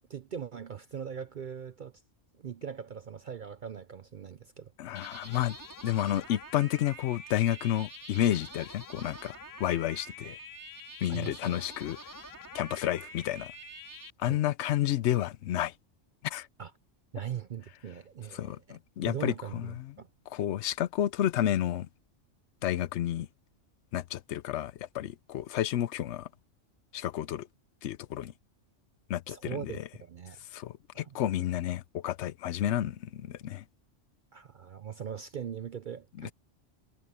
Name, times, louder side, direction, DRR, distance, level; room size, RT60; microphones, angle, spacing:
voice 1, 0.1-2.0 2.4-4.7 11.1-11.6 14.2-14.4 16.6-16.7 17.1-18.8 19.0-20.1 29.3-30.4 30.9-31.2 34.3-36.3, right 8 dB, 50° right, 0.6 m, -40 dB
voice 2, 4.8-5.6 5.8-9.3 9.6-10.4 11.0-12.0 12.5-13.5 14.2-15.7 16.2-16.5 18.3-19.9 20.3-21.9 22.6-23.3 23.9-26.3 26.9-27.5 27.8-28.3 29.1-29.8 30.5-33.6 36.2-36.3, left 12 dB, 70° left, 0.9 m, -31 dB
sound 1, 4.9-14.1, left 1 dB, 15° left, 4.0 m, -46 dB
omnidirectional pair, 1.3 m